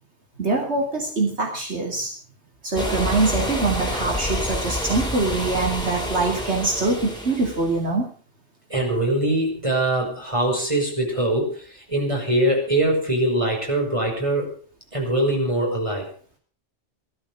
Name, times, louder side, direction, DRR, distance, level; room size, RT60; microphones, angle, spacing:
voice 1, 0.4-2.1 2.6-8.1, right 3 dB, 70° right, 1 dB, 3.2 m, -24 dB
sound 1, 2.7-7.8, left 1 dB, 5° left, 4.4 m, -28 dB
voice 2, 8.7-14.5 14.9-16.1, right 1 dB, 25° right, 0 dB, 5.9 m, -22 dB
17.0 x 13.5 x 6.3 m, 0.42 s
omnidirectional pair, 1.2 m